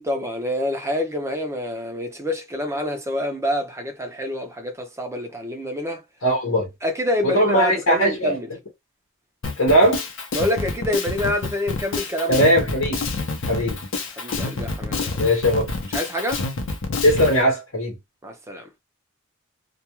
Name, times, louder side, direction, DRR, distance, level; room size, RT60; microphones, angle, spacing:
voice 1, 0.0-6.0 6.8-8.5 10.3-12.5 14.2-15.3 15.9-16.4 18.2-18.7, left 1 dB, 15° right, 0.5 m, -27 dB
voice 2, 6.2-6.7 7.2-8.4 9.6-10.0 12.3-13.0 13.5-13.8 15.2-15.7 17.0-17.9, equal, 85° left, 0.9 m, -19 dB
Drum kit, 9.4-17.4, left 3 dB, 65° left, 0.6 m, -28 dB
2.2 x 2.2 x 2.9 m
head